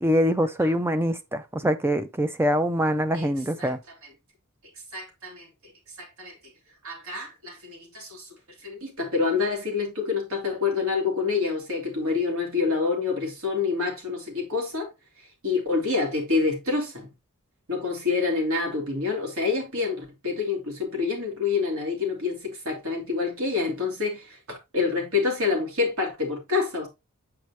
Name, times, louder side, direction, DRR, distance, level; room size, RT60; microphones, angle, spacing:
voice 1, 0.0-3.8, equal, 10° right, 0.5 m, -24 dB
voice 2, 4.9-5.5 6.0-6.3 6.8-8.3 8.6-14.9 15.4-17.1 17.7-26.9, left 4 dB, 70° right, 2.8 m, -27 dB
8.2 x 4.9 x 2.8 m
head